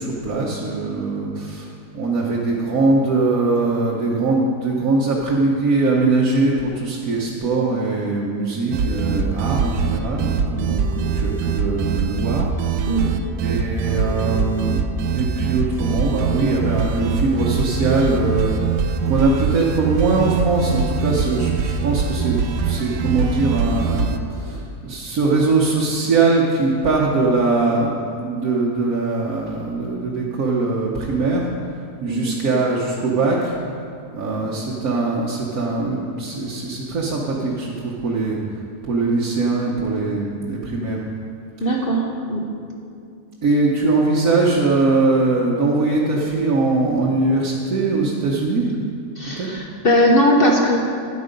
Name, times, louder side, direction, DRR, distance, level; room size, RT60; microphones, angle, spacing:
voice 1, 0.0-1.7 1.9-12.5 12.9-13.1 13.4-14.8 15.1-31.5 32.0-33.5 34.1-38.4 38.8-41.0 41.6-41.7 43.4-48.7 49.2-49.5, right 3 dB, 60° right, -5 dB, 1.4 m, -21 dB
sound 1, 8.7-24.2, right 5 dB, 80° right, 1.2 m, -23 dB
voice 2, 41.6-42.4 49.2-50.8, equal, 40° left, 0 dB, 0.9 m, -18 dB
10.5 x 8.3 x 5.2 m, 2.4 s
omnidirectional pair, 1.8 m